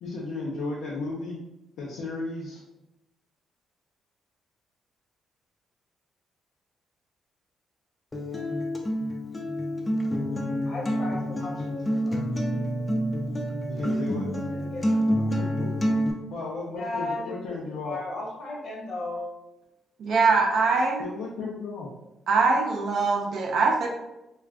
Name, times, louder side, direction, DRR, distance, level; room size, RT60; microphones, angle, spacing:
voice 1, 0.0-1.4 1.8-2.6 13.7-14.3 15.4-15.7 16.3-18.0 21.0-21.9, left 3 dB, 85° left, -4 dB, 0.5 m, -34 dB
Acoustic guitar, 8.1-16.1, equal, 15° left, 0.4 m, -28 dB
voice 2, 10.7-12.3 14.5-14.9 15.2-15.4 16.8-17.5 17.8-19.3, left 2 dB, 55° left, -3 dB, 0.9 m, -35 dB
voice 3, 20.0-21.0 22.3-23.9, right 4 dB, 60° right, 0 dB, 0.5 m, -22 dB
2.4 x 2.3 x 3.4 m, 0.94 s
cardioid pair, 125°, 0 cm